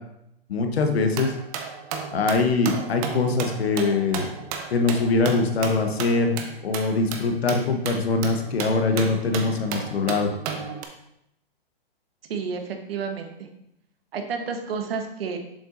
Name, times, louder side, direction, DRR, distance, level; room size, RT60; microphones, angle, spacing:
voice 1, 0.5-1.3 2.1-4.3 4.7-6.4 6.6-10.3, left 3 dB, 85° left, 5 dB, 1.1 m, -23 dB
sound 1, 1.1-10.9, right 6 dB, 35° right, 0.8 m, -34 dB
voice 2, 12.3-13.3 14.1-15.4, right 5 dB, 70° right, 5 dB, 1.2 m, -30 dB
7.1 x 5.6 x 2.6 m, 0.79 s
hypercardioid pair, 135°, 30 cm